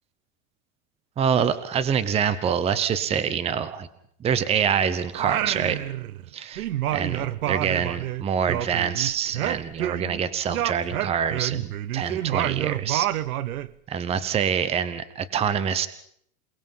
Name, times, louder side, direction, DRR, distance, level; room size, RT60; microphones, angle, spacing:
voice 1, 1.2-3.9 4.2-5.8 6.3-13.1 13.9-15.9, right 7 dB, 15° right, 15 dB, 0.9 m, -26 dB
Singing, 5.1-6.3 6.6-10.2 10.5-13.7, right 13 dB, 90° right, 1.0 m, -28 dB
28.0 x 19.5 x 5.6 m, 0.66 s
supercardioid pair, 150°, 42 cm